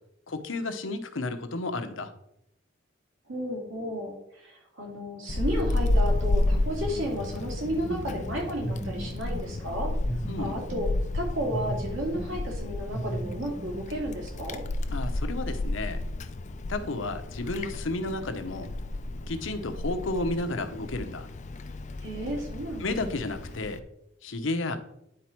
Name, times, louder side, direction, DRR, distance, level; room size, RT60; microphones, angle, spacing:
voice 1, 0.3-2.1 10.3-10.6 14.9-16.0 16.7-18.7 19.3-21.3 22.8-23.8 24.2-24.8, left 2 dB, 75° left, 8 dB, 0.9 m, -32 dB
voice 2, 3.3-9.9 10.4-10.9 11.1-14.6 22.0-22.8, equal, 90° right, 0 dB, 2.5 m, -33 dB
Wind, 5.3-23.8, left 2 dB, 40° left, 0.4 m, -32 dB
sound 1, 7.6-8.2 8.6-9.6 10.0-11.1 11.5-12.5 12.9-14.0, right 1 dB, 10° right, 2.3 m, -36 dB
9.9 x 4.2 x 4.5 m, 0.79 s
head